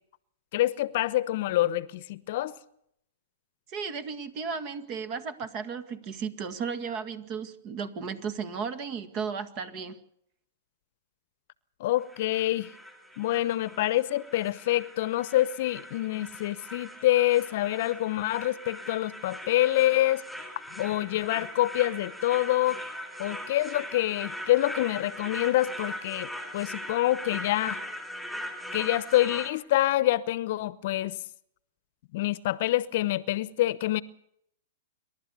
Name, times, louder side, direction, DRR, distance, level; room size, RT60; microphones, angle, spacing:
voice 1, 0.5-2.6 11.8-12.7 13.2-20.2 20.8-22.8 23.2-27.8 28.7-31.2 32.1-34.0, left 15 dB, 50° left, 0.9 m, -26 dB
voice 2, 3.7-10.0, right 6 dB, 35° right, 2.0 m, -34 dB
sound 1, 12.0-29.5, equal, ahead, 3.5 m, -40 dB
27.5 x 12.0 x 8.4 m
hypercardioid pair, 145°, 0 cm